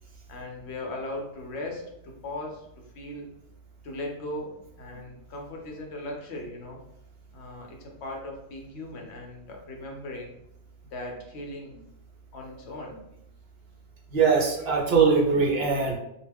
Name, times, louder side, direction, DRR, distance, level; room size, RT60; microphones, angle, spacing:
voice 1, 0.3-2.6 2.9-3.3 3.8-6.8 7.3-10.3 10.9-11.7 12.3-13.0, left 1 dB, 65° left, 0 dB, 0.9 m, -38 dB
voice 2, 14.1-16.0, right 5 dB, 60° right, -1 dB, 0.8 m, -21 dB
2.4 x 2.2 x 3.3 m, 0.80 s
omnidirectional pair, 1.2 m